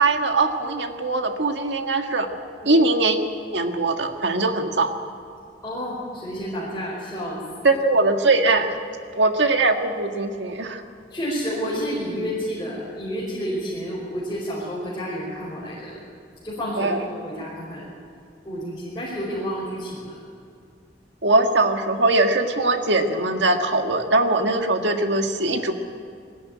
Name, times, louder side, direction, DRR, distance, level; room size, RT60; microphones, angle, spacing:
voice 1, 0.0-2.3 2.6-3.2 3.5-4.9 7.6-8.8 9.1-10.8 16.8-17.0 21.2-25.7, right 2 dB, 80° right, 5 dB, 1.7 m, -21 dB
voice 2, 5.6-7.7 11.1-16.0 16.4-16.9 17.2-17.9 18.4-20.2, equal, 20° left, -8 dB, 5.0 m, -30 dB
21.0 x 14.5 x 9.5 m, 2.4 s
head